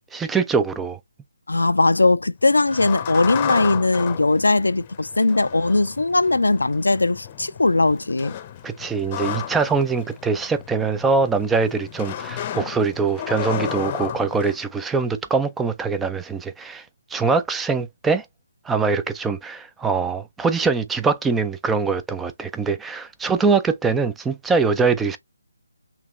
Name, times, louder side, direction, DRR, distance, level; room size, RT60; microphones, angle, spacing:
voice 1, 0.1-1.0 8.6-16.8 17.1-18.2 18.7-25.2, right 4 dB, 5° right, 0.4 m, -23 dB
voice 2, 1.5-8.3, left 2 dB, 80° left, 0.4 m, -19 dB
sound 1, 2.5-14.6, left 10 dB, 25° left, 0.7 m, -33 dB
5.8 x 2.9 x 3.1 m
figure-of-eight pair, 155°, 0 cm